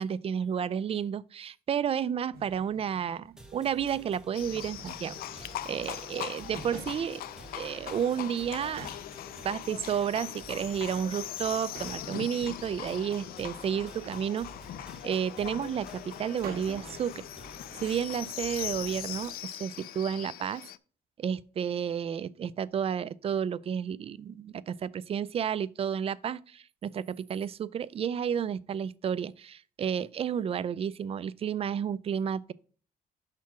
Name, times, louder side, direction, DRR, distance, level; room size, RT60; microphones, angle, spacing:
voice 1, 0.0-5.1 5.4-7.2 7.5-8.9 9.4-14.5 15.0-17.2 17.7-20.6 21.2-32.5, right 8 dB, 40° right, 0.4 m, -31 dB
sound 1, 2.3-3.5 4.2-6.0 6.3-7.9 8.2-8.3 8.6-9.7 10.5-12.3 12.6-13.4 14.0-14.6 16.1-16.2 16.4-17.1 17.5-18.0, right 4 dB, 85° right, 1.2 m, -49 dB
sound 2, 3.4-19.4, right 1 dB, 5° right, 1.1 m, -50 dB
Livestock farm animals working animals, 4.3-20.8, left 13 dB, 75° left, 0.4 m, -41 dB
5.9 x 4.4 x 5.9 m
cardioid pair, 115°, 16 cm